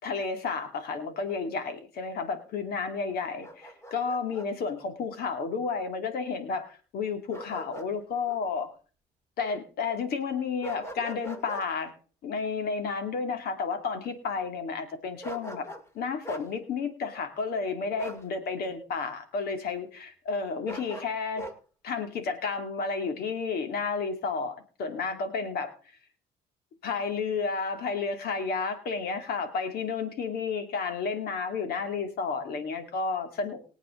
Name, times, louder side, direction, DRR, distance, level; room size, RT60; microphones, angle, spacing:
voice 1, 0.0-8.7 9.4-11.9 12.2-15.7 15.9-21.5 21.8-25.7 26.8-33.6, left 5 dB, 65° left, 7 dB, 2.4 m, -31 dB
Bark, 3.4-4.5 7.3-7.9 8.3-8.4 10.6-11.7 15.2-15.9 16.2-16.5 18.0-18.3 20.7-21.6, right 1 dB, 15° left, 2.2 m, -41 dB
22.0 x 8.2 x 3.7 m, 0.39 s
cardioid pair, 110°, 17 cm